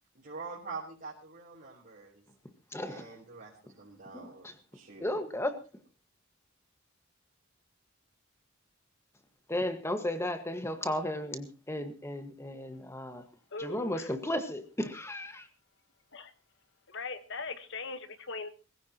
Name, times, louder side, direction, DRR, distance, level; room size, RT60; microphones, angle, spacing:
voice 1, 0.1-2.2 2.9-4.5 4.7-5.2, right 4 dB, 50° right, -6 dB, 4.1 m, -45 dB
voice 2, 2.7-3.1 4.1-4.3 5.0-5.6 9.5-13.2 13.6-15.5, left 1 dB, 15° left, 8 dB, 1.7 m, -34 dB
voice 3, 13.5-14.1 16.1-16.3 16.9-18.5, left 4 dB, 65° left, 10 dB, 1.4 m, -40 dB
22.0 x 15.5 x 3.0 m, 0.33 s
head